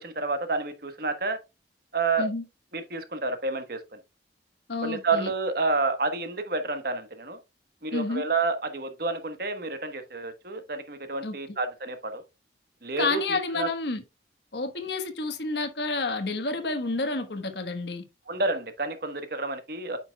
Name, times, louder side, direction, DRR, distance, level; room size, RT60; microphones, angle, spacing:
voice 1, 0.0-1.4 1.9-2.3 2.7-3.8 4.8-7.4 7.8-12.2 12.8-13.7 18.3-20.0, right 3 dB, 55° right, 1.2 m, -29 dB
voice 2, 4.7-5.3 7.9-8.2 11.2-11.4 13.0-14.0 14.5-18.1, left 3 dB, 65° left, 1.3 m, -29 dB
9.0 x 5.7 x 2.3 m
head